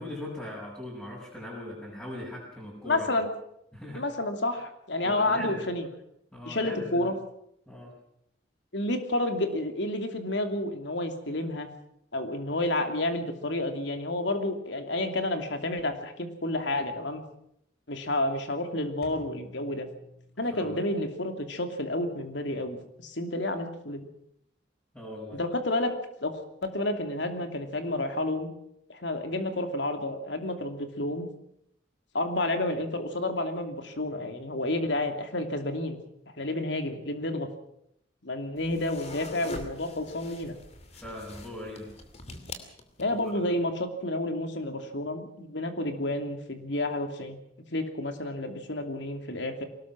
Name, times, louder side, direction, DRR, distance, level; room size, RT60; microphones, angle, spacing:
voice 1, 0.0-3.1 3.7-4.0 5.0-5.6 6.3-7.1 7.7-7.9 20.5-20.8 24.9-25.4 40.9-41.9 43.1-43.3, left 1 dB, 10° left, -7 dB, 6.6 m, -40 dB
voice 2, 2.8-3.3 3.9-5.9 6.5-7.1 8.7-11.7 12.1-17.2 17.9-19.9 20.4-24.1 25.3-28.5 28.9-31.3 32.1-36.0 36.4-37.5 38.2-40.5 43.0-47.4 47.7-49.6, left 1 dB, 70° left, 6 dB, 2.8 m, -30 dB
sound 1, 19.0-21.0, equal, 50° left, 5.0 m, -49 dB
sound 2, 38.6-43.3, left 2 dB, 35° left, 2.6 m, -43 dB
23.0 x 19.0 x 6.1 m, 0.75 s
head